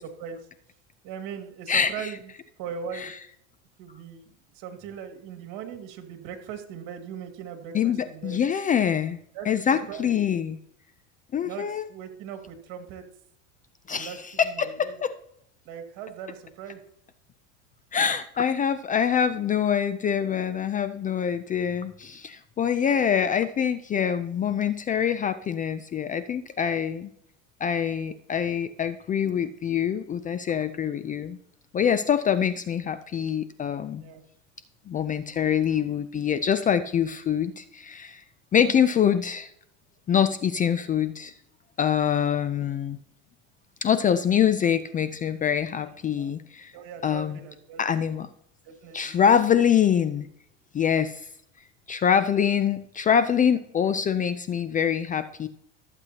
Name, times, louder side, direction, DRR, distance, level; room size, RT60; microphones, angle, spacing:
voice 1, 1.0-2.3 2.6-3.1 3.8-8.4 9.3-9.5 9.9-10.1 11.4-13.0 13.9-14.2 14.4-15.0 15.7-16.8 34.0-34.2 46.1-46.3 46.7-47.8 48.6-49.1, right 7 dB, 60° right, 5 dB, 2.2 m, -39 dB
voice 2, 1.7-2.1 2.9-3.1 7.7-9.2 9.5-10.6 11.3-11.8 13.9-15.1 17.9-27.1 27.6-31.4 31.7-34.0 34.9-38.2 38.5-39.5 40.1-41.3 41.8-43.0 43.8-46.7 47.0-47.4 47.8-48.3 48.9-50.3 50.7-51.3 51.9-55.5, left 8 dB, 20° left, 12 dB, 0.4 m, -25 dB
14.5 x 8.0 x 2.9 m, 0.70 s
supercardioid pair, 115°, 36 cm